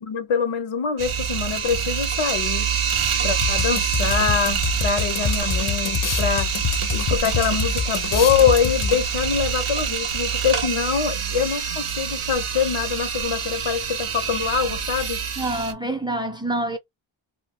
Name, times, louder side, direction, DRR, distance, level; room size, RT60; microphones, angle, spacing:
voice 1, 0.0-2.7 3.2-6.6 6.9-15.2, left 6 dB, 85° left, 0.7 m, -24 dB
sound 1, 1.0-15.7, right 7 dB, 85° right, 0.7 m, -26 dB
sound 2, 3.4-9.3, left 7 dB, 45° left, 0.4 m, -27 dB
voice 2, 15.4-16.8, right 1 dB, 10° right, 0.5 m, -26 dB
2.2 x 2.2 x 3.4 m
wide cardioid pair, 55°, 49 cm